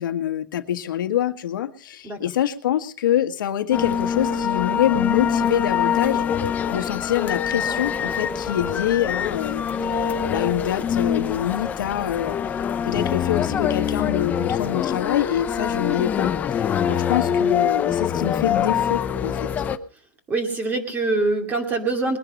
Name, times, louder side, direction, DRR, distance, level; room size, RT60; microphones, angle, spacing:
voice 1, 0.0-6.2 6.7-12.4 12.8-19.5, left 11 dB, 85° left, 8 dB, 1.5 m, -25 dB
sound 1, 3.7-19.8, left 8 dB, 15° left, 0.6 m, -24 dB
voice 2, 20.3-22.2, right 3 dB, 15° right, 6 dB, 2.5 m, -24 dB
21.0 x 10.5 x 5.4 m, 0.41 s
supercardioid pair, 165°, 11 cm